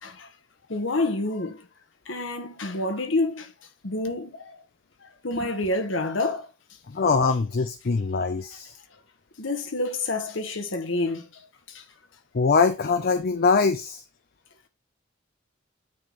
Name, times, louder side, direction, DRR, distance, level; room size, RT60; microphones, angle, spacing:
voice 1, 0.7-1.6 2.1-3.5 3.8-4.5 5.2-6.5 7.0-7.1 9.4-11.3 11.7-11.8, left 2 dB, 75° left, 1.2 m, -28 dB
voice 2, 6.9-8.7 12.3-14.0, left 4 dB, 50° left, 0.5 m, -23 dB
9.1 x 3.7 x 3.9 m
head